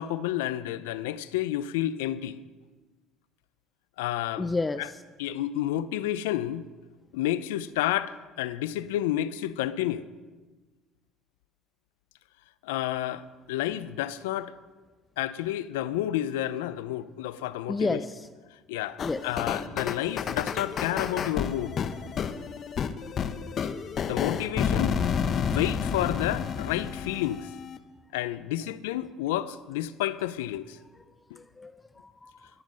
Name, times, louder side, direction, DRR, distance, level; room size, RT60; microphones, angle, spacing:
voice 1, 0.0-2.4 4.0-4.5 5.2-6.7 7.1-10.1 12.6-14.5 15.2-18.0 18.7-19.0 19.2-21.8 24.1-24.9 25.4-27.5 28.1-30.8, left 13 dB, 85° left, 0.6 m, -30 dB
voice 2, 4.4-5.0 17.7-18.3 19.0-19.3 30.9-31.0 31.4-32.5, left 3 dB, 20° left, 0.6 m, -31 dB
sound 1, 19.0-27.8, left 7 dB, 50° left, 0.9 m, -30 dB
20.5 x 7.4 x 6.4 m
supercardioid pair, 75°, 0 cm